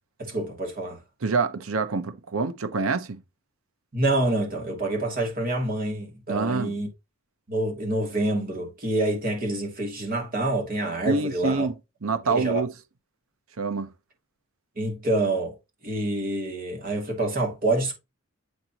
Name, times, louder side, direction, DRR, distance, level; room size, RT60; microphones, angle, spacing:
voice 1, 0.2-1.0 3.9-6.9 7.5-11.7 12.3-12.6 14.8-15.6 15.8-17.9, right 2 dB, 45° right, 2.6 m, -27 dB
voice 2, 1.2-3.2 6.3-6.7 11.1-11.7 12.0-12.7 13.6-13.9, right 4 dB, 85° right, 0.9 m, -26 dB
8.0 x 4.4 x 3.0 m
head